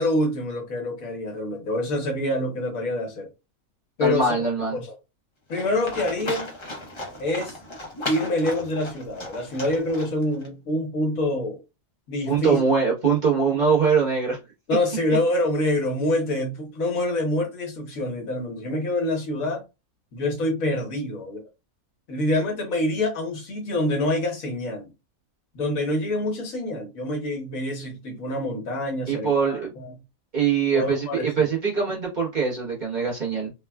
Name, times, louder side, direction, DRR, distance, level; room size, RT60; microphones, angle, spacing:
voice 1, 0.0-3.3 4.0-5.0 5.5-6.5 7.2-7.6 8.1-11.6 12.1-12.6 13.5-13.6 14.7-19.6 20.1-21.4 22.1-24.9 25.5-29.9 30.7-31.4 31.9-32.0, left 1 dB, 75° left, 1.3 m, -26 dB
voice 2, 4.0-4.8 12.3-14.4 15.1-15.2 29.1-29.7 30.3-33.5, right 5 dB, 35° right, 1.1 m, -22 dB
Livestock farm animals working animals, 5.5-10.5, left 2 dB, 30° left, 0.5 m, -36 dB
3.4 x 2.2 x 2.2 m
omnidirectional pair, 1.5 m